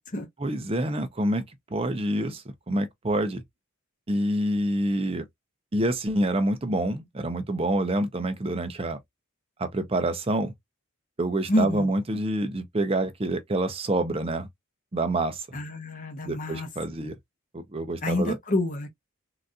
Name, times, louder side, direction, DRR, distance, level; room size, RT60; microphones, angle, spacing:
voice 1, 0.4-1.4 1.7-3.4 4.1-5.2 5.7-9.0 9.6-10.5 11.2-14.5 14.9-15.4 16.2-17.1 17.5-18.3, right 1 dB, 25° right, 0.6 m, -27 dB
voice 2, 11.5-11.9 15.5-16.7 18.0-18.9, left 1 dB, 35° left, 0.9 m, -27 dB
3.9 x 2.6 x 2.3 m
head